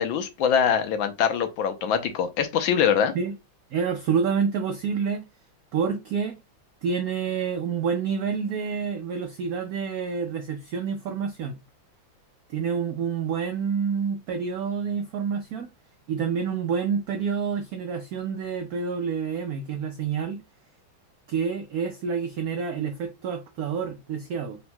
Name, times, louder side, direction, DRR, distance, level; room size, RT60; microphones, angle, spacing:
voice 1, 0.0-3.1, left 7 dB, 80° left, 1.4 m, -23 dB
voice 2, 3.7-5.2 5.7-6.4 6.8-11.6 12.5-15.7 16.1-20.4 21.3-24.6, right 6 dB, 80° right, 0.8 m, -28 dB
4.3 x 3.8 x 2.2 m
omnidirectional pair, 2.1 m